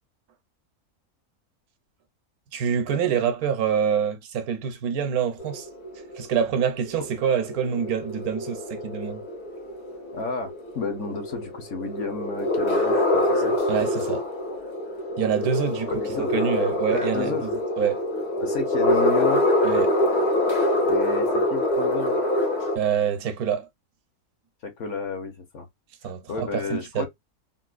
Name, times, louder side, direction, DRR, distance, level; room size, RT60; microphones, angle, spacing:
voice 1, 2.5-5.7 6.1-9.2 13.7-14.2 15.2-15.9 16.2-17.5 17.8-18.0 19.6-19.9 22.7-23.7 26.0-27.1, right 8 dB, 80° right, 1.2 m, -26 dB
sound 1, 5.4-22.8, left 1 dB, 85° left, 1.6 m, -25 dB
voice 2, 10.1-13.5 15.9-16.3 16.9-17.5 18.4-19.4 20.9-22.2 24.6-25.7 26.3-27.1, left 4 dB, 60° left, 1.1 m, -32 dB
3.7 x 2.4 x 2.4 m
omnidirectional pair, 1.6 m